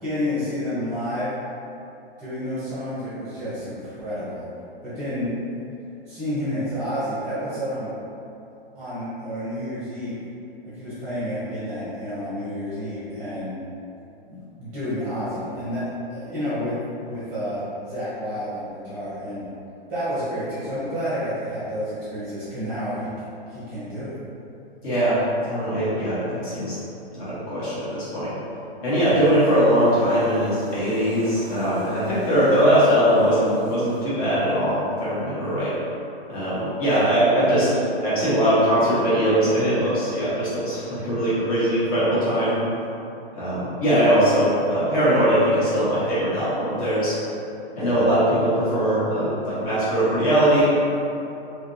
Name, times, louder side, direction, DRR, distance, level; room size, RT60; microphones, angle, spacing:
voice 1, 0.0-1.3 2.2-4.5 4.8-5.3 6.1-7.9 8.7-10.2 10.6-13.5 14.2-16.7 17.0-19.4 19.9-23.1 23.5-24.1 47.7-48.0, equal, 5° right, -13 dB, 1.0 m, -30 dB
voice 2, 24.8-25.2 25.4-26.8 27.1-28.3 28.8-35.7 36.3-37.7 38.0-42.5 43.3-47.1 47.8-50.7, equal, 35° left, -12 dB, 1.3 m, -21 dB
sound 1, 28.9-34.1, equal, 50° right, 0.7 m, -38 dB
3.3 x 3.0 x 2.7 m, 2.8 s
hypercardioid pair, 155°, 30 cm